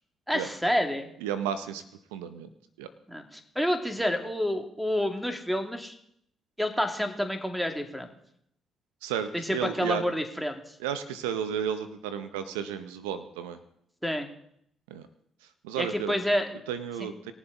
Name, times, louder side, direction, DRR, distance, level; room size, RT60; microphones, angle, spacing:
voice 1, 0.3-1.1 3.1-5.9 6.6-8.1 9.3-10.7 14.0-14.3 15.7-16.5 17.0-17.1, equal, ahead, 5 dB, 2.3 m, -29 dB
voice 2, 1.2-1.8 2.1-2.5 2.8-2.9 9.0-10.1 10.8-13.6 14.9-15.0 15.6-16.2 16.7-17.3, right 8 dB, 85° right, 11 dB, 0.6 m, -33 dB
20.0 x 7.2 x 4.0 m, 0.72 s
hypercardioid pair, 50°, 0 cm